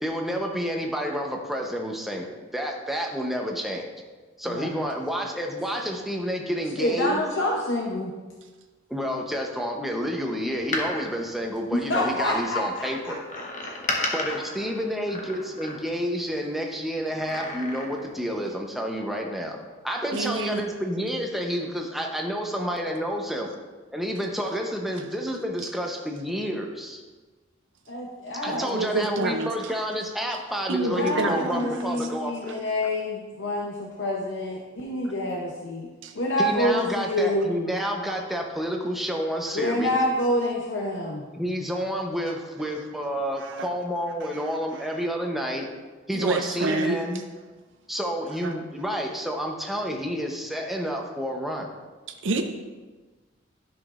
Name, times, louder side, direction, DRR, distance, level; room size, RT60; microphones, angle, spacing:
voice 1, 0.0-3.9 4.4-7.2 8.9-13.2 14.1-19.6 19.8-23.5 23.9-27.0 28.4-32.5 36.4-40.0 41.3-45.7 46.1-47.2 47.9-51.7, equal, ahead, 1 dB, 0.7 m, -29 dB
voice 2, 6.8-8.1 11.7-13.2 13.6-13.7 27.9-29.2 30.9-35.9 36.1-37.5 39.5-41.2, left 1 dB, 65° left, -1 dB, 0.7 m, -27 dB
Door, 10.5-12.3 13.3-16.2 17.1-18.2 18.5-18.6, left 2 dB, 40° left, 1.0 m, -34 dB
voice 3, 20.1-20.7 28.5-29.7 30.7-31.9 36.0-36.2 43.4-43.7 46.1-47.0 52.2-52.4, right 3 dB, 65° right, 5 dB, 0.5 m, -28 dB
11.0 x 5.9 x 2.5 m, 1.3 s
head